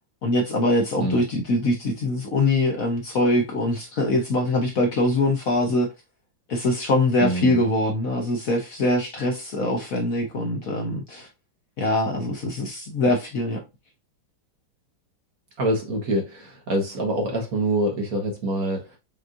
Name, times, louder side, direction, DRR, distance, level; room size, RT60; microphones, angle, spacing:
voice 1, 0.2-5.9 6.5-11.3 11.8-13.6, left 1 dB, 55° left, 1.1 m, -23 dB
voice 2, 7.2-7.6 15.6-18.9, right 1 dB, 50° right, 1.5 m, -25 dB
5.2 x 3.1 x 2.5 m
omnidirectional pair, 2.1 m